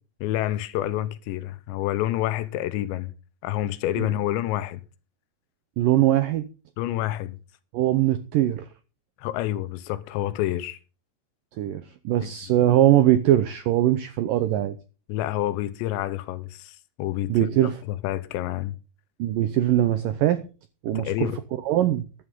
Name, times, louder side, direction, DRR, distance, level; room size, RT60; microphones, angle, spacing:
voice 1, 0.2-3.1 3.4-4.8 6.8-7.4 9.2-10.8 12.2-12.3 15.1-17.5 17.9-18.8 20.9-21.4, left 14 dB, 85° left, 3.2 m, -28 dB
voice 2, 5.8-6.5 7.7-8.7 11.6-14.8 17.3-17.8 19.2-20.5 20.8-21.3 21.6-22.0, right 13 dB, 85° right, 1.9 m, -21 dB
14.5 x 11.5 x 3.7 m
omnidirectional pair, 5.1 m